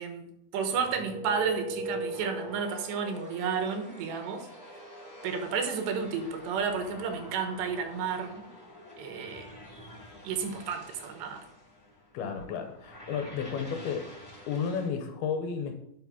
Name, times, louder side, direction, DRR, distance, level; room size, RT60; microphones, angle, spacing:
voice 1, 0.0-4.5 5.2-8.5 9.0-9.5 10.2-11.5, right 6 dB, 85° right, 6 dB, 3.4 m, -32 dB
sound 1, 0.6-14.9, right 1 dB, 5° left, 2.7 m, -44 dB
voice 2, 12.1-14.1 14.5-15.8, left 6 dB, 75° left, 6 dB, 2.7 m, -32 dB
9.8 x 6.0 x 5.8 m, 0.78 s
omnidirectional pair, 4.9 m